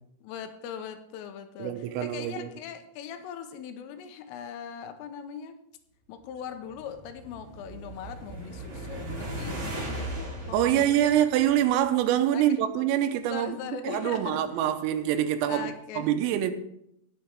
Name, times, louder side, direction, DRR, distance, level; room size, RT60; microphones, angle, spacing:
voice 1, 0.2-5.6 6.1-11.1 12.3-12.6 13.3-14.7 15.5-16.1, left 8 dB, 85° left, 3.3 m, -40 dB
voice 2, 1.6-2.5 10.5-13.6 13.9-16.5, right 11 dB, 90° right, 3.4 m, -25 dB
sound 1, 6.5-12.0, right 1 dB, 45° right, 1.1 m, -38 dB
18.5 x 7.2 x 3.4 m
omnidirectional pair, 5.9 m